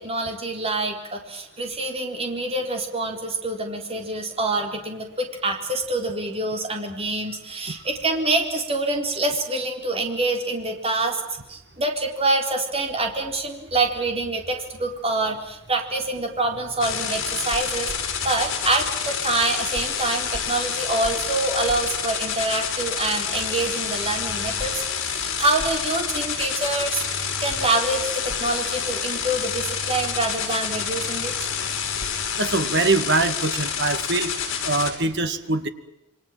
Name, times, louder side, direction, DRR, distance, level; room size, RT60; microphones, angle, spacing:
voice 1, 0.0-11.2 11.5-31.3, right 2 dB, 30° right, 3 dB, 4.1 m, -26 dB
sound 1, 16.8-34.9, left 7 dB, 65° left, 6.6 m, -28 dB
sound 2, 17.4-19.4 19.7-33.2, equal, 40° left, 7.4 m, -43 dB
voice 2, 32.4-34.3 34.6-35.7, right 3 dB, 55° right, 9 dB, 2.1 m, -23 dB
28.0 x 24.5 x 7.6 m, 0.91 s
head